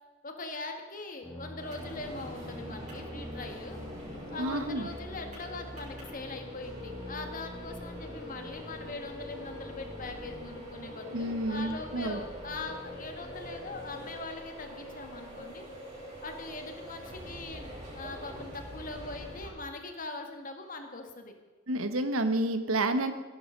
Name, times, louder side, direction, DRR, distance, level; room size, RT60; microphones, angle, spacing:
voice 1, 0.2-3.8 4.3-15.7 16.2-21.4, left 2 dB, 40° left, 5 dB, 1.8 m, -41 dB
sound 1, 1.2-14.1, left 1 dB, ahead, 2.5 m, -46 dB
sound 2, 1.6-19.5, equal, 40° right, 6.0 m, -44 dB
voice 2, 4.4-4.9 11.1-12.2 21.7-23.1, right 1 dB, 90° right, 9 dB, 1.3 m, -29 dB
16.5 x 11.5 x 5.2 m, 1.3 s
head